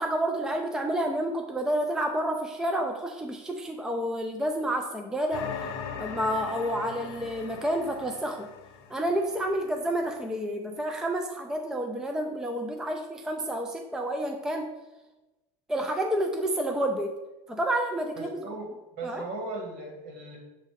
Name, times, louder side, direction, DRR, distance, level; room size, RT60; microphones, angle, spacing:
voice 1, 0.0-5.5 6.0-8.5 8.9-14.7 15.7-17.2 17.5-18.4 19.0-19.2, right 1 dB, 5° right, 3 dB, 0.5 m, -29 dB
sound 1, 5.3-9.8, left 7 dB, 70° left, 0.9 m, -40 dB
voice 2, 18.1-20.4, right 2 dB, 55° right, 1 dB, 2.0 m, -38 dB
7.4 x 2.7 x 5.0 m, 1.1 s
supercardioid pair, 105°, 19 cm